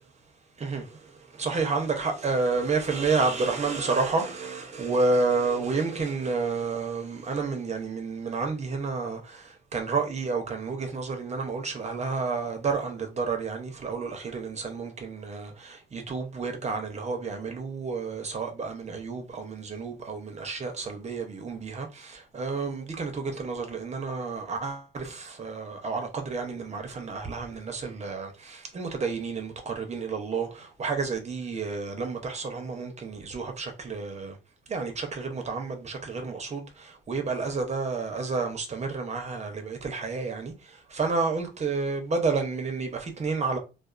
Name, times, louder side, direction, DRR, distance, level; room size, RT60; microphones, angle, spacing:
voice 1, 0.6-34.4 34.7-43.6, right 4 dB, 35° right, 0.7 m, -30 dB
2.4 x 2.3 x 2.4 m
cardioid pair, 90°, 20 cm